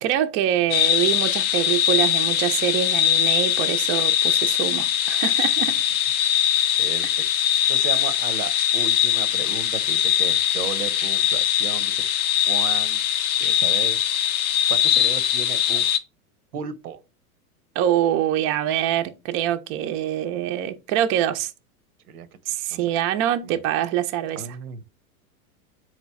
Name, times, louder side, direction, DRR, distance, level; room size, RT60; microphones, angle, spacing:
voice 1, 0.0-5.8 17.8-21.5 22.5-24.5, right 11 dB, 30° right, 0.4 m, -24 dB
sound 1, 0.7-16.0, left 11 dB, 40° left, 0.4 m, -21 dB
voice 2, 6.8-7.3 7.7-12.0 12.5-13.0 13.4-14.0 14.7-15.9 16.5-17.0 22.1-22.3 22.7-22.9 23.4-23.6 24.4-24.8, right 7 dB, 90° right, 0.7 m, -34 dB
3.9 x 3.1 x 3.4 m
hypercardioid pair, 110°, 44 cm